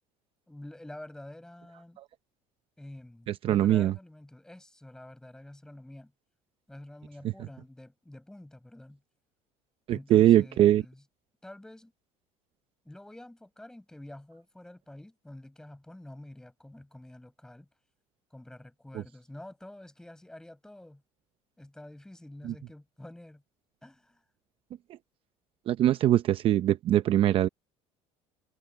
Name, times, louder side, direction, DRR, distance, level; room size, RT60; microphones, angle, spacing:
voice 1, 0.5-2.0 2.8-6.1 6.7-9.0 9.9-11.0 11.4-11.9 12.8-17.7 18.3-21.0 21.6-23.4 23.8-24.2, left 1 dB, 5° left, 5.9 m, -48 dB
voice 2, 3.3-3.9 9.9-10.8 22.4-22.5 25.7-27.5, right 12 dB, 45° right, 0.6 m, -22 dB
cardioid pair, 150°, 13 cm